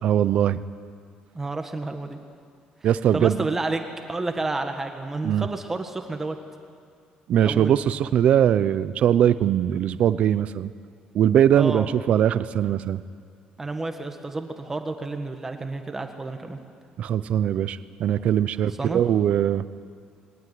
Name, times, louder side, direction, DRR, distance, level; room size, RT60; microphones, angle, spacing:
voice 1, 0.0-0.6 2.8-3.4 5.2-5.5 7.3-10.7 11.1-13.0 17.0-19.7, right 10 dB, 50° right, 14 dB, 0.7 m, -21 dB
voice 2, 1.3-2.2 3.1-3.8 4.1-6.4 7.4-7.8 11.6-11.9 13.6-16.6 18.8-19.0, right 3 dB, 15° right, 5 dB, 1.7 m, -30 dB
21.0 x 19.0 x 9.5 m, 2.2 s
cardioid pair, 165°, 3 cm